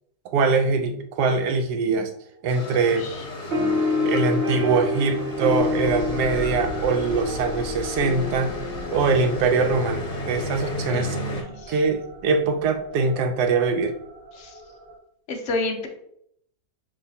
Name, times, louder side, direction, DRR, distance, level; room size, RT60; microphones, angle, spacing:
voice 1, 0.2-2.1 2.4-3.1 4.0-8.6 8.9-11.2 11.7-13.9, right 4 dB, 80° right, 7 dB, 1.2 m, -23 dB
sound 1, 1.9-15.0, left 3 dB, 65° right, 1.5 m, -41 dB
sound 2, 2.5-11.4, left 2 dB, 30° left, 0.7 m, -33 dB
sound 3, 3.5-10.4, left 2 dB, 45° right, 0.9 m, -28 dB
voice 2, 10.9-11.8 14.3-14.6 15.3-15.9, left 2 dB, 60° left, 3 dB, 0.9 m, -31 dB
6.0 x 3.2 x 2.7 m, 0.71 s
omnidirectional pair, 1.7 m